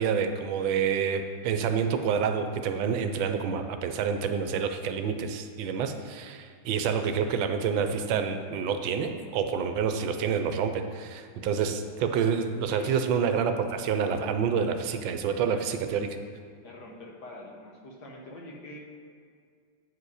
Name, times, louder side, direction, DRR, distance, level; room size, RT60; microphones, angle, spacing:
voice 1, 0.0-16.1, right 6 dB, 80° right, 7 dB, 1.4 m, -28 dB
voice 2, 12.7-13.0 15.4-15.6 16.6-18.8, left 1 dB, 60° left, -1 dB, 1.6 m, -44 dB
8.7 x 4.8 x 4.8 m, 2.1 s
omnidirectional pair, 2.1 m